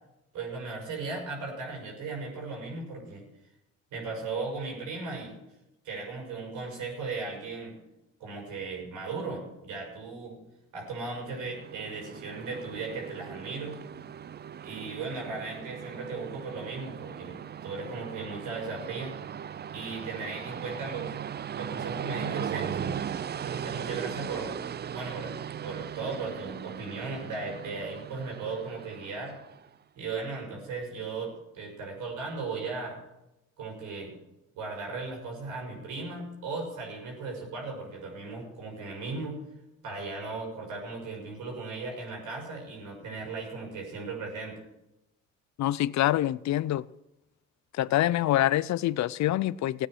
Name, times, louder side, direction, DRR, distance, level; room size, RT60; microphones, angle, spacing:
voice 1, 0.3-3.2 3.9-5.4 5.8-7.8 8.2-10.4 10.7-13.8 14.6-19.1 19.7-21.2 21.6-23.0 23.4-24.5 24.9-25.3 25.6-29.4 29.9-33.0 33.6-34.1 34.5-39.4 39.8-44.6, right 3 dB, 85° right, 6.3 m, -37 dB
Train, 11.0-29.7, right 8 dB, 35° right, 0.4 m, -38 dB
voice 2, 45.6-46.8 47.8-49.9, left 14 dB, 65° left, 0.5 m, -25 dB
16.0 x 9.0 x 6.3 m
cardioid pair, 90°, 30 cm